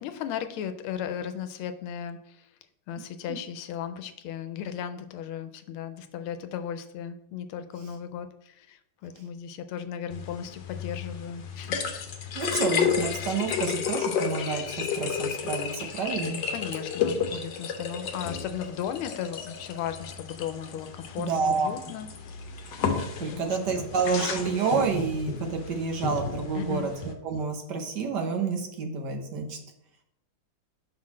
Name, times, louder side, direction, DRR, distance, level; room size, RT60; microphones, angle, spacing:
voice 1, 0.0-2.4 2.9-11.8 16.5-22.1 23.3-23.9 26.5-26.9, left 9 dB, 85° left, 9 dB, 1.4 m, -36 dB
sound 1, 10.1-27.1, left 6 dB, 65° left, 1.3 m, -32 dB
voice 2, 12.3-16.4 21.2-21.7 23.2-29.6, right 5 dB, 60° right, 3 dB, 1.5 m, -29 dB
5.9 x 3.8 x 6.1 m, 0.76 s
omnidirectional pair, 2.3 m